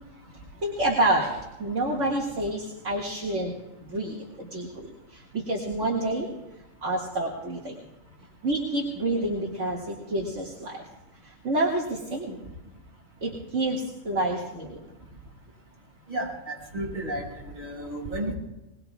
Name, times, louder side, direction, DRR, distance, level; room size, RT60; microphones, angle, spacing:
voice 1, 0.6-3.5 3.8-6.3 6.8-7.7 8.4-10.8 11.2-12.4 13.2-14.8, right 1 dB, 65° right, -4 dB, 2.4 m, -28 dB
voice 2, 16.1-18.3, right 1 dB, 35° right, -4 dB, 6.7 m, -33 dB
22.0 x 21.5 x 2.4 m, 1.0 s
omnidirectional pair, 1.4 m